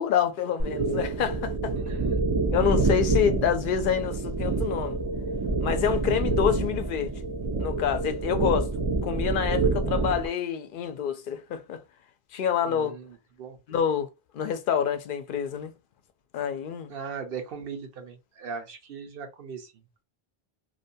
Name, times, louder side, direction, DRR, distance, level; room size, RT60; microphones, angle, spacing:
voice 1, 0.0-1.8 2.5-5.0 5.6-7.1 7.6-8.7 9.0-11.8 12.3-12.9 13.7-14.1 14.3-15.7 16.3-16.9, left 8 dB, 60° left, 0.6 m, -27 dB
sound 1, 0.6-10.3, right 3 dB, 40° right, 0.4 m, -27 dB
voice 2, 1.7-2.2 12.6-13.6 16.9-20.0, right 6 dB, 65° right, 0.9 m, -39 dB
2.6 x 2.2 x 2.6 m
omnidirectional pair, 1.0 m